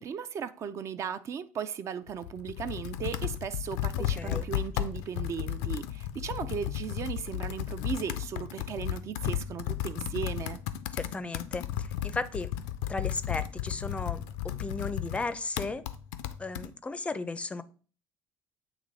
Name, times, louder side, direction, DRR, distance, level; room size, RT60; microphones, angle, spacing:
voice 1, 0.0-10.6, right 7 dB, 45° right, 0.5 m, -36 dB
Computer keyboard, 2.1-16.7, left 12 dB, 85° left, 0.5 m, -34 dB
voice 2, 4.1-4.5 10.9-12.5 12.9-15.8 16.4-17.6, left 3 dB, 20° left, 0.5 m, -35 dB
8.0 x 3.0 x 4.0 m
supercardioid pair, 95°, 7 cm